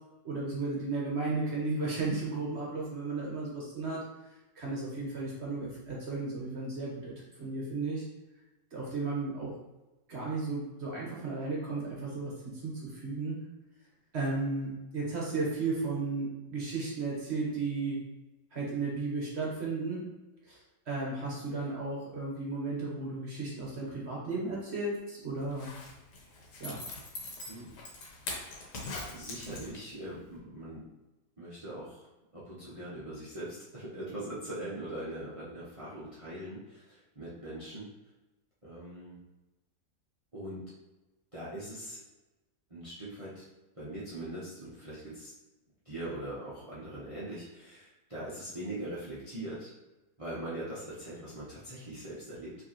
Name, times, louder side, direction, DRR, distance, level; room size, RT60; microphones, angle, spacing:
voice 1, 0.2-4.1 4.5-7.1 7.4-8.0 8.7-9.5 10.1-13.4 14.1-18.0 18.5-20.0 20.4-20.6 20.9-25.7 26.6-26.8, right 3 dB, 45° right, -4 dB, 1.3 m, -34 dB
Zipper (clothing), 25.4-30.0 30.4-30.5, left 2 dB, 80° left, 1.5 m, -42 dB
voice 2, 29.1-30.8 31.4-32.1 32.3-37.9 38.6-39.2 40.3-40.6 41.3-42.0 42.7-43.4 43.7-45.3 45.8-49.7 50.2-52.6, right 1 dB, 25° right, -9 dB, 0.9 m, -41 dB
4.8 x 3.4 x 2.9 m, 1.1 s
omnidirectional pair, 1.7 m